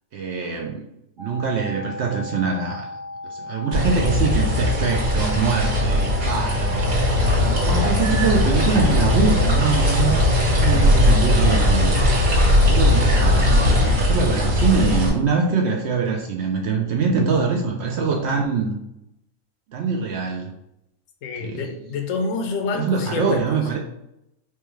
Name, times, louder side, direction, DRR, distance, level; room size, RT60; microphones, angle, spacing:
voice 1, 0.1-0.8 1.2-2.9 3.2-10.2 10.5-11.9 12.6-18.8 19.7-20.5 21.4-21.7 22.7-23.8, right 5 dB, 65° right, 1 dB, 0.7 m, -23 dB
sound 1, 1.2-13.9, left 2 dB, 20° right, 1.0 m, -36 dB
sound 2, 3.7-15.1, left 1 dB, 85° right, 1.6 m, -19 dB
voice 2, 21.2-23.6, left 4 dB, 70° left, 4 dB, 0.9 m, -27 dB
4.4 x 2.2 x 3.0 m, 0.84 s
omnidirectional pair, 1.4 m